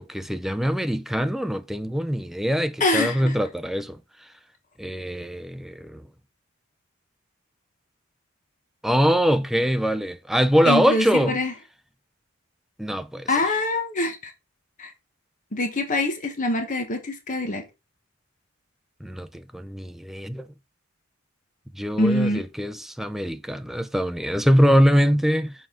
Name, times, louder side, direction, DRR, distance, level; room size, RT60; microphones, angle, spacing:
voice 1, 0.0-4.0 4.8-6.0 8.8-11.4 12.8-13.3 19.0-20.5 21.8-25.5, equal, ahead, 0.4 m, -23 dB
voice 2, 2.8-3.3 10.6-11.5 13.3-14.3 14.8-14.9 15.5-17.6 22.0-22.4, left 2 dB, 40° left, 1.2 m, -24 dB
6.3 x 4.7 x 3.7 m
head